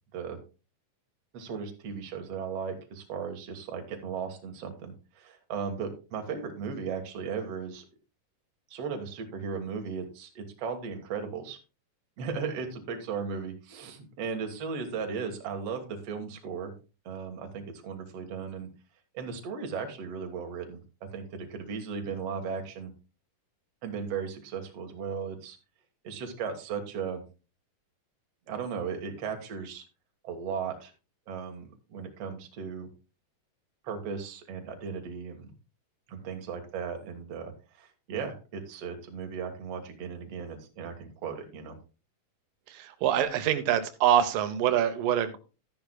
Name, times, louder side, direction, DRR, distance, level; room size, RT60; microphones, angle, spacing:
voice 1, 1.3-7.9 8.7-11.6 12.2-16.7 17.1-18.7 19.1-22.9 23.8-25.6 26.0-27.2 28.5-29.8 30.2-30.9 31.3-32.9 33.8-35.5 36.1-41.8, right 6 dB, 55° right, 4 dB, 2.2 m, -36 dB
voice 2, 42.8-45.4, right 10 dB, 85° right, 9 dB, 2.5 m, -25 dB
13.0 x 10.5 x 2.2 m, 0.32 s
omnidirectional pair, 3.8 m